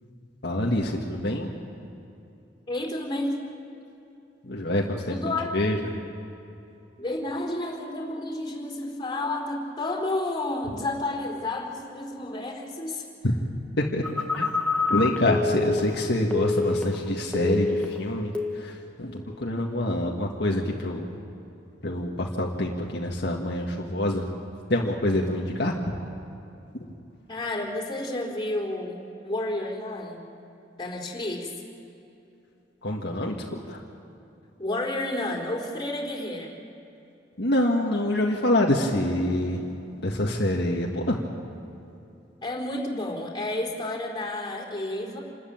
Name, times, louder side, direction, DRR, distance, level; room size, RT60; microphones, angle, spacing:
voice 1, 0.4-1.5 4.4-5.9 13.2-13.3 13.8-14.0 14.3-14.5 14.9-21.1 21.8-24.2 24.7-25.9 32.8-33.8 37.4-39.6 40.0-41.2, left 1 dB, 65° left, -1 dB, 1.9 m, -26 dB
voice 2, 2.7-3.4 5.1-5.5 7.0-13.0 27.3-30.2 30.8-31.5 34.6-36.5 42.4-45.2, left 2 dB, 25° left, -1 dB, 4.0 m, -31 dB
Telephone, 14.0-17.1 17.3-18.0 18.3-18.7, left 4 dB, 5° left, 1.6 m, -27 dB
28.0 x 13.5 x 8.8 m, 2.8 s
head